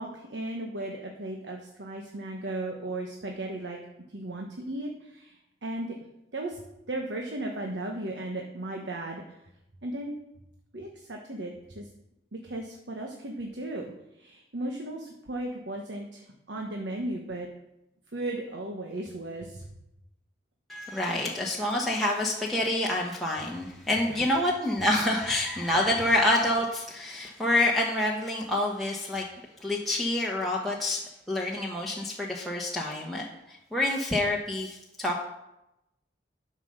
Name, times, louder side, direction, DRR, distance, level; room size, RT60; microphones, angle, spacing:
voice 1, 0.0-3.8 4.1-5.9 6.3-9.2 9.8-10.2 10.7-11.9 12.4-17.5 18.1-19.7 24.1-24.2, right 1 dB, 80° right, 1 dB, 1.2 m, -36 dB
voice 2, 20.7-29.2 29.6-31.0 31.3-35.2, left 1 dB, ahead, -4 dB, 1.0 m, -27 dB
11.5 x 5.5 x 6.5 m, 0.88 s
head